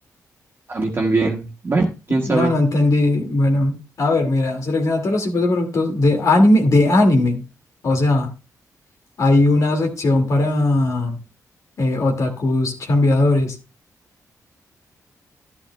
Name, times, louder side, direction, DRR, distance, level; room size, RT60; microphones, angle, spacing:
voice 1, 0.7-2.5, right 3 dB, 35° right, -1 dB, 1.5 m, -21 dB
voice 2, 2.3-7.4 7.8-8.3 9.2-11.2 11.8-13.6, left 2 dB, 60° left, 3 dB, 2.1 m, -18 dB
12.0 x 11.5 x 2.2 m, 0.29 s
cardioid pair, 105°, 6 cm